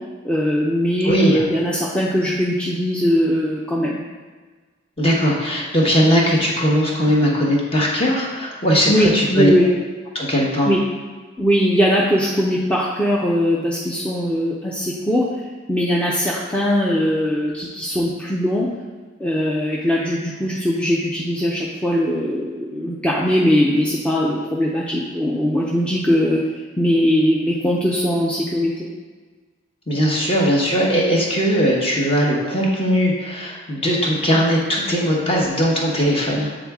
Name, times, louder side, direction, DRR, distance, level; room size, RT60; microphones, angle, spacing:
voice 1, 0.2-4.0 8.9-9.7 10.7-10.8 11.4-15.3 15.7-18.7 19.2-26.4 26.8-28.9, equal, 5° left, -5 dB, 0.5 m, -20 dB
voice 2, 1.0-1.4 5.0-9.7 10.1-10.7 29.9-36.5, equal, 30° left, -2 dB, 1.1 m, -19 dB
7.9 x 3.9 x 3.6 m, 1.4 s
head